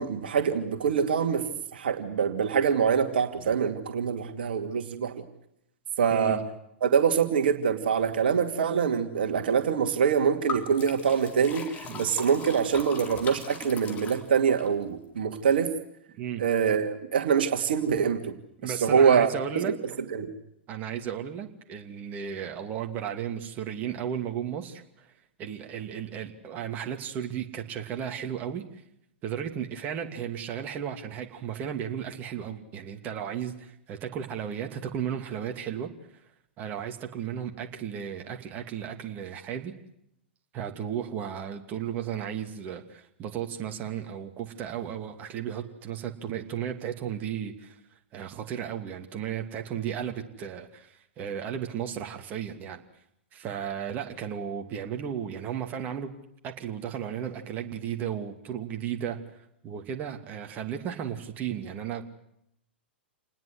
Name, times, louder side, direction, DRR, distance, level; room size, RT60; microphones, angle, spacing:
voice 1, 0.0-1.5 1.7-5.2 6.0-6.4 6.8-15.7 16.4-18.3 18.6-19.3 19.6-19.7 20.1-20.3, right 7 dB, 60° right, 6 dB, 2.5 m, -25 dB
voice 2, 6.1-6.4 11.8-12.1 16.2-16.4 18.6-19.7 20.7-25.1 25.4-28.6 29.2-35.9 36.6-39.7 40.5-47.8 48.1-52.8 53.3-56.1 56.4-59.2 59.6-62.0, right 9 dB, 30° right, 5 dB, 2.7 m, -34 dB
Liquid, 10.5-14.7, left 5 dB, 25° left, 3.9 m, -39 dB
28.0 x 20.0 x 8.1 m, 0.78 s
figure-of-eight pair, 105°, 6 cm